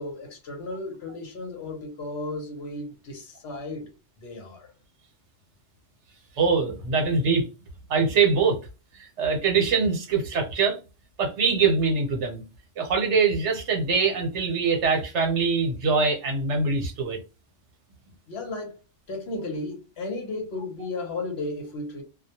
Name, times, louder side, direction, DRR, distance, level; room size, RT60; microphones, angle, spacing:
voice 1, 0.0-3.9 4.2-4.7 18.3-18.8 19.1-22.0, left 2 dB, 60° left, 0.9 m, -34 dB
voice 2, 6.4-7.4 7.9-8.6 8.9-10.8 11.2-12.4 12.8-17.2, right 5 dB, 70° right, 1.0 m, -23 dB
2.3 x 2.1 x 2.7 m
omnidirectional pair, 1.3 m